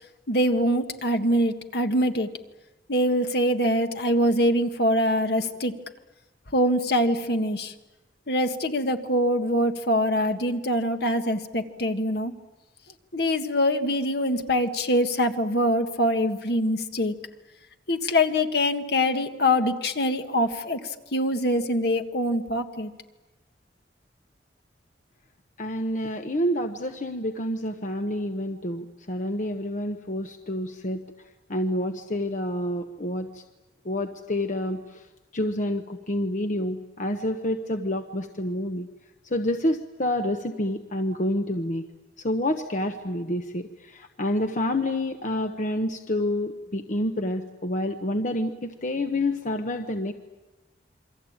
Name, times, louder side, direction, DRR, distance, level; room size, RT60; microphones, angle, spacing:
voice 1, 0.3-2.3 2.9-5.7 6.5-7.7 8.3-12.3 13.1-17.1 17.9-22.9, equal, 65° left, 7 dB, 1.8 m, -24 dB
voice 2, 25.6-31.0 31.5-33.4 33.8-35.1 35.3-38.9 39.2-41.9 42.2-50.1, left 1 dB, 45° left, 6 dB, 1.1 m, -28 dB
28.0 x 23.5 x 8.9 m, 1.1 s
head